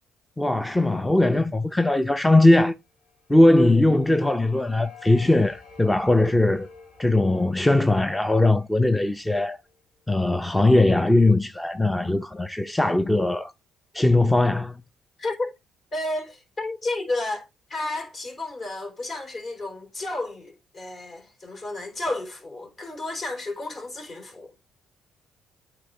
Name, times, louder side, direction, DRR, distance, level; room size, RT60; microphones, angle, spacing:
voice 1, 0.4-2.7 3.3-6.7 7.0-9.6 10.1-13.5 13.9-14.8, left 2 dB, 10° left, 0.5 m, -20 dB
sound 1, 3.0-10.0, left 5 dB, 85° left, 2.5 m, -49 dB
voice 2, 15.2-15.5 15.9-24.5, left 2 dB, 45° left, 3.6 m, -32 dB
8.7 x 4.0 x 3.8 m
cardioid pair, 85°, 0 cm